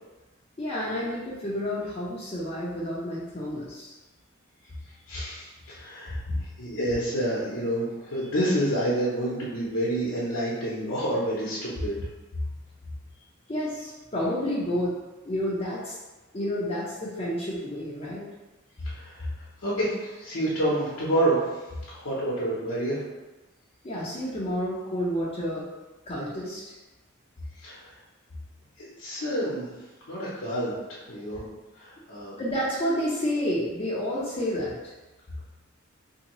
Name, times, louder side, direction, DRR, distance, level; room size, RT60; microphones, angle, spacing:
voice 1, 0.6-3.9 6.3-6.4 13.5-14.9 15.2-16.0 16.3-18.3 23.8-25.7 26.1-26.6 32.4-34.7, equal, 30° left, -7 dB, 0.6 m, -30 dB
voice 2, 4.9-12.0 18.8-23.0 27.6-27.9 28.8-29.7 30.1-31.4 31.7-32.4, right 1 dB, 70° left, -8 dB, 0.8 m, -29 dB
3.5 x 2.7 x 3.0 m, 1.1 s
head